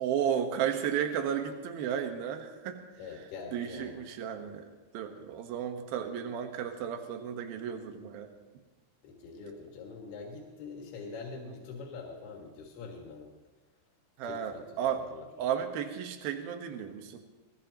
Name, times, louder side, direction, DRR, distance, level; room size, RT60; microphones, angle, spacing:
voice 1, 0.0-2.8 3.1-3.2 3.5-8.3 11.4-11.6 14.2-17.2, right 8 dB, 70° right, 5 dB, 3.0 m, -34 dB
voice 2, 3.0-4.0 9.0-13.3 14.2-14.6 15.0-15.3, left 4 dB, 80° left, -1 dB, 4.0 m, -44 dB
21.0 x 21.0 x 3.0 m, 1.2 s
omnidirectional pair, 4.5 m